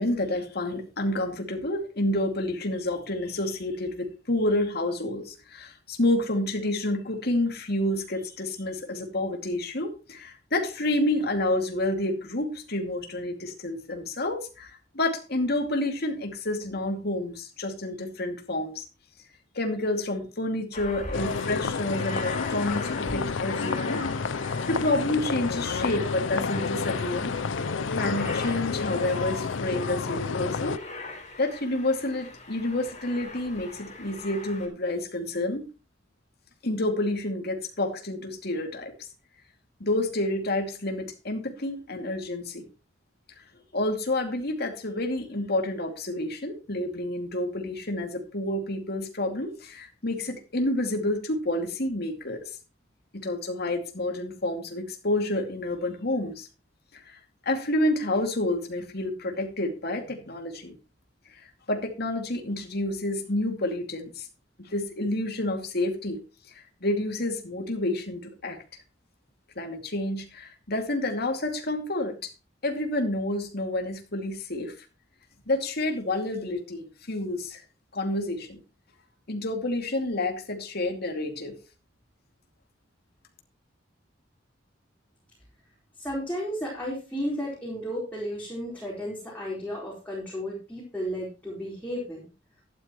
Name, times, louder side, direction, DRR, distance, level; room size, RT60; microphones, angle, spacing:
voice 1, 0.0-18.8 19.5-24.0 24.3-27.3 27.9-30.8 31.4-35.7 36.6-39.1 39.8-42.6 43.7-52.4 53.1-56.5 56.9-57.2 57.5-60.8 61.3-64.3 64.6-66.2 66.5-68.6 69.6-72.3 72.6-74.8 75.5-77.6 77.9-78.6 79.3-81.6, left 1 dB, 60° left, 4 dB, 2.5 m, -29 dB
Aircraft, 20.7-34.7, left 3 dB, 40° left, 4.0 m, -41 dB
sound 1, 21.1-30.8, left 5 dB, 90° left, 0.6 m, -30 dB
voice 2, 86.0-92.2, equal, 10° left, -5 dB, 4.3 m, -33 dB
12.5 x 11.0 x 3.1 m, 0.31 s
head